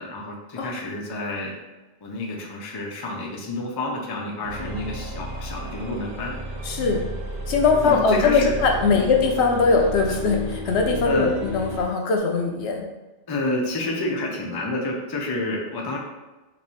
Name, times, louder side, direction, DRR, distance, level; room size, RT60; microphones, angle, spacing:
voice 1, 0.0-1.5 2.0-6.4 7.8-8.5 8.9-9.1 11.0-11.3 13.3-16.0, left 2 dB, 35° left, -1 dB, 0.4 m, -29 dB
sound 1, 4.4-11.9, right 1 dB, 60° right, 1.0 m, -33 dB
voice 2, 6.6-7.0 7.5-12.9, left 4 dB, 70° left, 2 dB, 0.9 m, -21 dB
3.2 x 2.6 x 4.2 m, 1.1 s
omnidirectional pair, 1.2 m